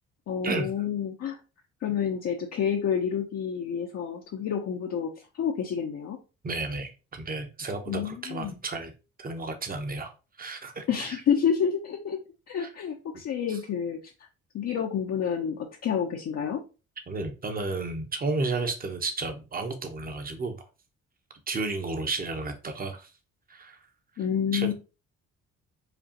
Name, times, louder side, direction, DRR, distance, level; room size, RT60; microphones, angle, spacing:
voice 1, 0.3-1.4 1.8-6.2 7.9-8.6 10.9-12.2 12.5-14.0 14.5-16.6 24.2-24.7, left 7 dB, 55° left, 1 dB, 0.7 m, -29 dB
voice 2, 6.4-8.9 9.2-11.2 12.6-12.7 13.5-13.6 17.1-20.6 21.5-23.1 23.5-23.9 24.2-24.3 24.5-24.7, right 3 dB, 30° right, 6 dB, 0.9 m, -32 dB
5.0 x 2.4 x 2.9 m, 0.31 s
cardioid pair, 90°, 30 cm